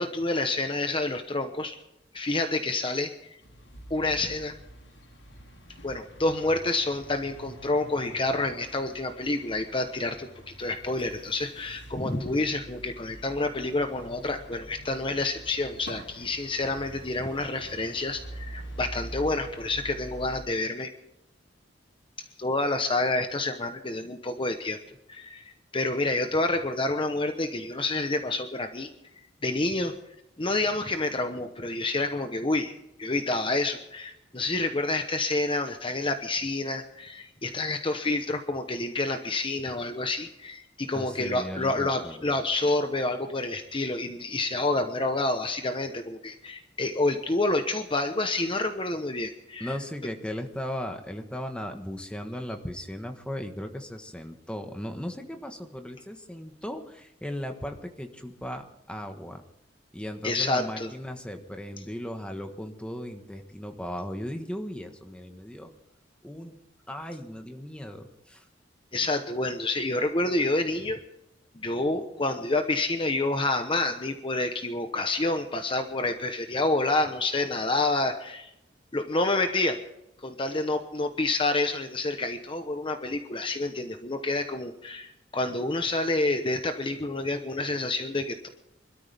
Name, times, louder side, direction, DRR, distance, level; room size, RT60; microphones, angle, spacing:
voice 1, 0.0-1.8 2.1-3.3 3.9-4.5 5.8-20.9 22.4-24.8 25.1-28.9 29.4-29.9 30.4-49.7 60.2-60.9 68.9-71.0 71.5-78.5 78.9-79.8 80.2-88.5, left 2 dB, 30° left, 6 dB, 1.0 m, -28 dB
sound 1, 3.4-20.4, right 1 dB, 80° left, 6.9 m, -45 dB
voice 2, 40.9-42.4 49.6-59.4 59.9-65.7 66.2-66.6 66.9-68.5, equal, 5° left, 5 dB, 1.4 m, -37 dB
25.0 x 13.0 x 3.5 m, 0.82 s
head